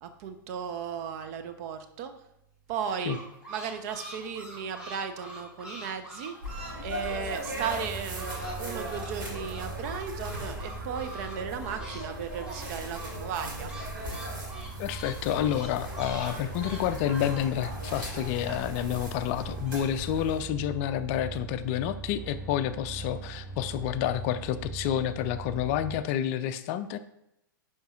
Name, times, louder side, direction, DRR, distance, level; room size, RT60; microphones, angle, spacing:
voice 1, 0.0-2.1 2.7-3.2 3.5-6.3 6.8-8.3 8.6-13.7, right 7 dB, 45° right, 7 dB, 0.8 m, -35 dB
sound 1, 2.7-7.9 8.1-12.1 12.3-18.8 19.2-19.8, right 1 dB, 10° right, 1.9 m, -44 dB
sound 2, 6.4-20.4, equal, 75° right, 2.6 m, -39 dB
sound 3, 7.6-26.0, right 4 dB, 10° left, 2.0 m, -42 dB
voice 2, 14.8-27.0, left 11 dB, 40° left, 11 dB, 0.4 m, -29 dB
10.5 x 4.4 x 2.4 m, 0.84 s
figure-of-eight pair, 100°, 11 cm